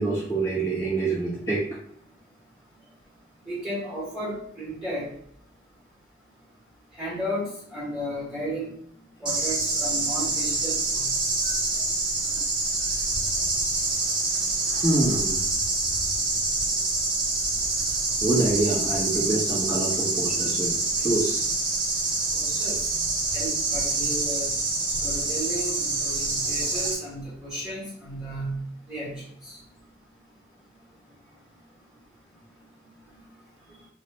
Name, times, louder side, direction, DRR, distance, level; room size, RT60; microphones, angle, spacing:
voice 1, 0.0-1.8 9.2-9.3 11.4-11.6 14.7-15.4 18.2-20.7 21.0-21.4, right 2 dB, 15° left, -10 dB, 1.1 m, -26 dB
voice 2, 3.4-5.1 6.9-8.7 9.2-11.1 11.4-11.6 22.3-22.8 23.3-24.6 25.0-29.6, equal, 5° right, -8 dB, 1.4 m, -34 dB
sound 1, 9.2-26.9, right 3 dB, 25° right, 0.8 m, -26 dB
3.3 x 2.2 x 4.1 m, 0.68 s
head